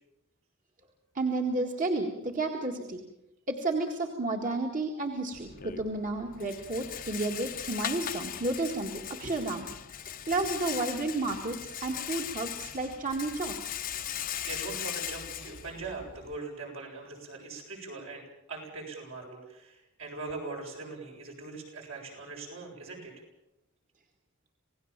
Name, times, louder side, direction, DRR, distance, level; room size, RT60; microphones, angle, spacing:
voice 1, 1.1-3.0 3.5-9.7 10.3-13.6, right 2 dB, 40° right, 2 dB, 2.0 m, -31 dB
Rattle, 5.3-16.4, left 10 dB, 45° left, 0.9 m, -39 dB
voice 2, 14.1-18.2 18.5-23.2, right 3 dB, 70° right, 1 dB, 7.7 m, -41 dB
27.5 x 18.0 x 7.5 m, 0.89 s
head